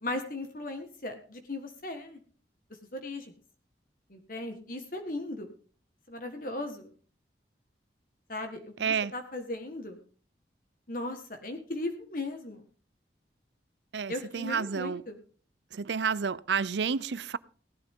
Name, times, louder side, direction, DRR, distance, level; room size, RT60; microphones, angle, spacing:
voice 1, 0.0-2.2 2.9-3.3 4.1-5.5 6.1-6.9 8.3-10.0 10.9-12.6 14.1-15.2, left 2 dB, 50° left, 1.6 m, -37 dB
voice 2, 8.8-9.1 13.9-15.0 15.7-17.4, right 6 dB, 80° right, 0.6 m, -30 dB
17.5 x 12.0 x 3.7 m
head